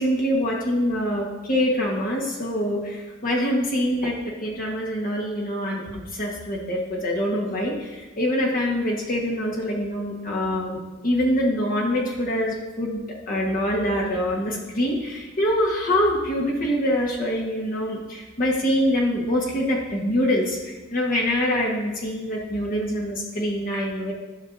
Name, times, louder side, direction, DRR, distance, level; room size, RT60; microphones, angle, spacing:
voice 1, 0.0-24.1, equal, 45° left, -2 dB, 1.3 m, -25 dB
11.0 x 6.1 x 2.6 m, 1.2 s
head